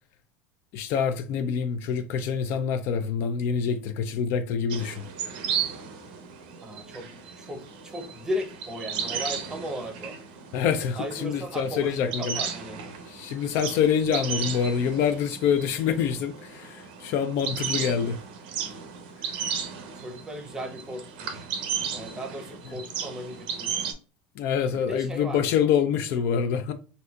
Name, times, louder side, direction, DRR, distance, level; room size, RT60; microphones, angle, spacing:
voice 1, 0.7-5.0 10.5-12.3 13.1-18.2 24.4-26.7, left 7 dB, 55° left, 0.4 m, -26 dB
sound 1, 4.7-23.9, right 7 dB, 85° right, 0.7 m, -35 dB
voice 2, 6.6-10.2 10.9-12.8 19.8-21.5 21.9-23.9 24.7-25.5, equal, 15° right, 0.7 m, -36 dB
4.1 x 2.6 x 2.3 m
supercardioid pair, 130°, 5 cm